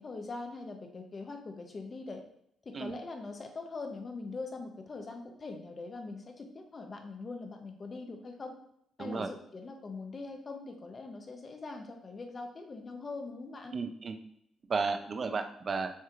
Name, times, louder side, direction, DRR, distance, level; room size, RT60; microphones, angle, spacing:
voice 1, 0.0-2.2 2.6-8.6 9.0-13.7, left 3 dB, 35° left, 4 dB, 0.8 m, -42 dB
voice 2, 9.0-9.3 13.7-14.2 14.7-15.9, right 4 dB, 40° right, 7 dB, 0.5 m, -33 dB
6.4 x 2.8 x 2.4 m, 0.71 s
cardioid pair, 90°, 0 cm